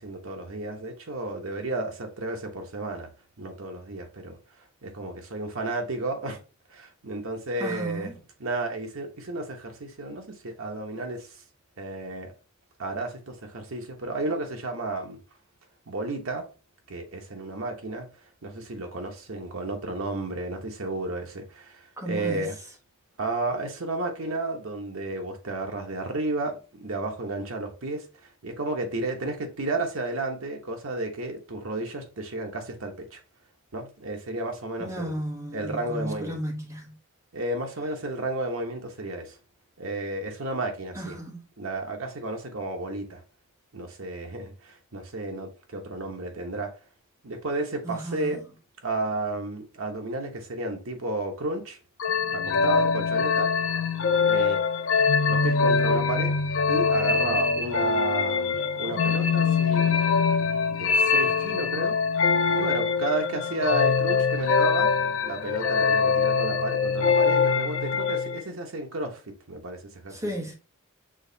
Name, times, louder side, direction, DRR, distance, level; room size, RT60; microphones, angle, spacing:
voice 1, 0.0-3.1 3.4-4.4 4.8-6.4 6.7-8.1 8.4-11.4 11.8-12.3 12.8-15.2 15.9-16.5 16.9-18.1 18.4-22.6 23.2-33.2 33.7-35.1 35.5-36.4 37.3-39.4 39.8-41.2 41.6-43.2 43.7-46.7 47.2-48.4 48.8-51.8 52.3-53.5 54.2-54.6 55.2-56.4 56.7-62.0 62.5-64.9 65.2-70.3, right 2 dB, 70° right, 1.0 m, -32 dB
voice 2, 7.6-8.1 22.0-22.4 34.8-36.9 41.0-41.4 47.8-48.3 70.2-70.5, right 1 dB, 15° right, 1.0 m, -33 dB
sound 1, 52.0-68.4, left 5 dB, 60° left, 0.4 m, -23 dB
6.3 x 3.0 x 2.7 m
head